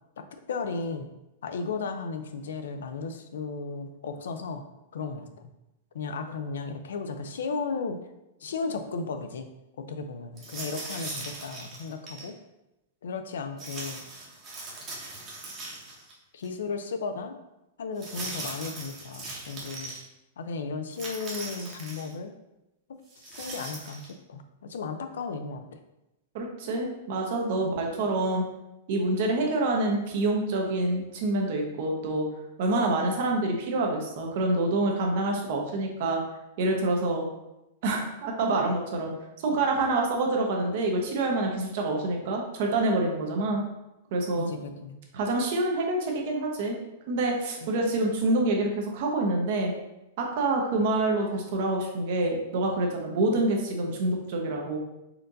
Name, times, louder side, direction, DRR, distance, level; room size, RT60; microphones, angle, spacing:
voice 1, 0.2-1.1 1.4-4.6 4.9-5.5 5.9-8.0 8.4-9.5 9.8-12.3 13.0-14.0 16.3-17.4 17.8-19.9 20.4-22.3 23.3-25.8 27.6-27.7 44.4-45.0 47.6-47.7, left 4 dB, 90° left, 8 dB, 0.5 m, -35 dB
sound 1, 10.4-12.3 13.6-16.1 16.4-16.5 18.0-20.0 20.9-22.1 23.1-24.1, right 2 dB, 25° right, 1.0 m, -39 dB
voice 2, 26.3-28.4 28.9-32.3 32.6-36.2 36.6-37.2 37.8-39.1 39.4-43.6 44.1-44.5 45.1-46.8 47.1-49.8 50.2-54.8, right 2 dB, 50° right, 1 dB, 0.9 m, -27 dB
4.3 x 2.6 x 3.9 m, 0.93 s
supercardioid pair, 155°, 0 cm